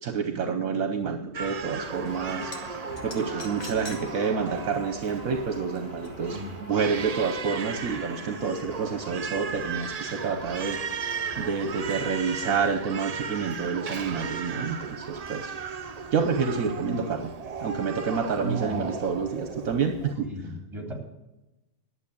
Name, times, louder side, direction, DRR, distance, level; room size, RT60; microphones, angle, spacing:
voice 1, 0.0-15.5 16.1-17.2 17.6-20.3, right 5 dB, 70° right, 6 dB, 1.2 m, -29 dB
Crying sobbing, 1.3-20.1, right 6 dB, 50° right, 0.4 m, -36 dB
sound 1, 1.8-12.8, equal, 40° left, 5.4 m, -44 dB
sound 2, 2.4-2.6 3.0-4.0 4.4-4.5 6.0-6.1, left 3 dB, 65° left, 2.2 m, -41 dB
voice 2, 6.3-6.6 16.5-17.0 18.3-18.8 20.2-20.9, right 2 dB, 20° right, 1 dB, 3.3 m, -34 dB
11.0 x 7.3 x 8.5 m, 0.98 s
omnidirectional pair, 1.6 m